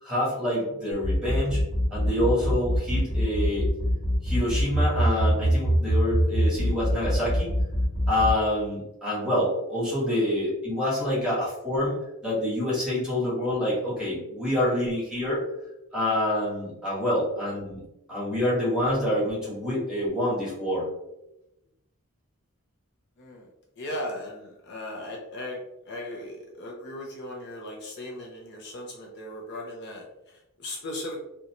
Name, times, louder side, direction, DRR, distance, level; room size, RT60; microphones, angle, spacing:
voice 1, 0.0-1.6 1.9-3.7 4.2-7.5 8.1-15.4 15.9-17.8 18.1-20.8, left 1 dB, 5° right, -8 dB, 1.2 m, -27 dB
sound 1, 0.9-8.3, equal, 30° left, 1.2 m, -24 dB
voice 2, 23.2-23.5 23.8-31.2, left 1 dB, 50° left, -2 dB, 0.5 m, -37 dB
2.5 x 2.2 x 2.8 m, 0.90 s
head